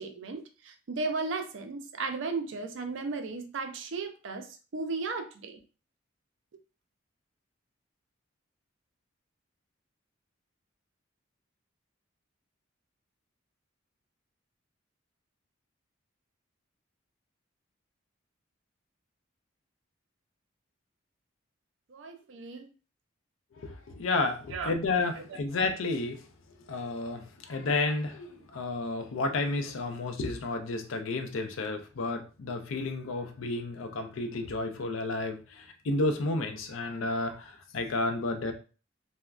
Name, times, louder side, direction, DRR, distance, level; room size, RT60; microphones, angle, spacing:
voice 1, 0.0-4.5 4.7-5.6 21.9-22.7 24.5-24.7 25.2-25.3, right 4 dB, 65° right, 5 dB, 0.4 m, -35 dB
voice 2, 23.5-26.2 26.7-38.5, left 3 dB, 75° left, 6 dB, 0.5 m, -31 dB
3.3 x 2.1 x 2.3 m, 0.35 s
head